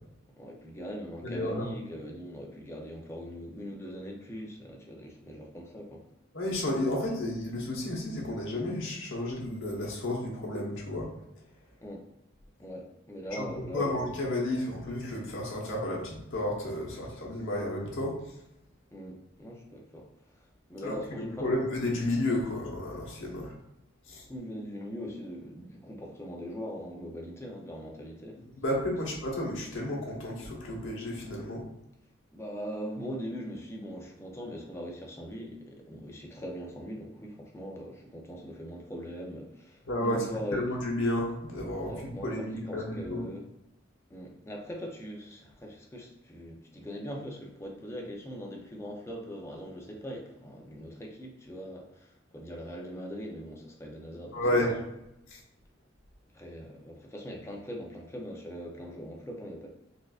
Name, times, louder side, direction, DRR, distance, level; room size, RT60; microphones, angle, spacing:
voice 1, 0.4-6.0 11.8-12.1 12.6-14.0 18.9-20.1 20.7-21.7 24.3-28.4 32.3-40.7 41.9-43.4 44.1-54.8 56.3-59.7, equal, 15° left, 0 dB, 0.5 m, -41 dB
voice 2, 1.2-1.6 6.3-11.1 13.4-18.2 20.8-23.5 24.1-24.2 28.5-31.6 39.9-43.2 54.3-54.7, left 1 dB, 75° left, -3 dB, 1.0 m, -32 dB
4.2 x 2.4 x 2.4 m, 0.85 s
head